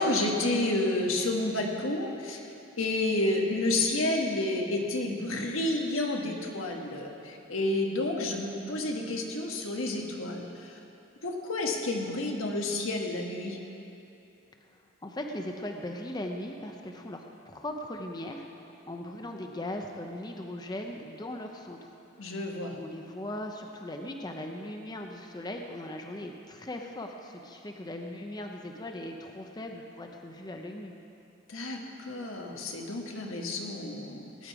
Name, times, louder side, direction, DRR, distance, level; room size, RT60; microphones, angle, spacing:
voice 1, 0.0-2.4 2.8-10.8 11.2-13.6 22.2-22.7 31.5-34.5, left 2 dB, 90° left, 1 dB, 1.6 m, -30 dB
voice 2, 14.6-22.4 22.8-30.9, left 1 dB, 20° left, 3 dB, 0.7 m, -39 dB
19.0 x 9.3 x 4.8 m, 2.8 s
head